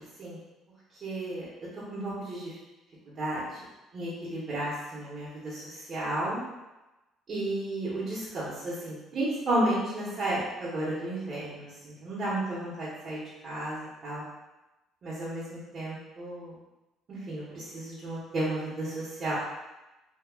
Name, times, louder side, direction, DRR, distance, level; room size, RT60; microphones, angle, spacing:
voice 1, 1.0-1.4 1.9-2.5 3.2-3.4 3.9-6.4 7.3-14.2 15.0-16.5 17.1-19.3, right 1 dB, 40° right, -8 dB, 1.0 m, -33 dB
2.8 x 2.3 x 3.5 m, 1.0 s
cardioid pair, 130°, 0 cm